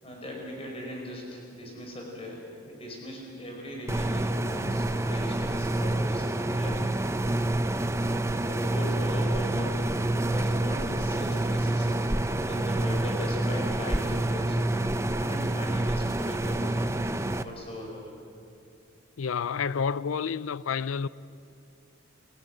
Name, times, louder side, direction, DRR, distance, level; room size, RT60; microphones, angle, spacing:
voice 1, 0.0-6.9 8.1-9.9 10.3-12.0 12.4-14.6 15.2-17.1 17.4-18.1, left 1 dB, 30° left, 5.5 m, -39 dB
sound 1, 3.9-17.4, right 1 dB, 15° right, 0.6 m, -27 dB
voice 2, 19.2-21.1, left 6 dB, 85° left, 0.5 m, -29 dB
29.5 x 16.0 x 8.0 m
head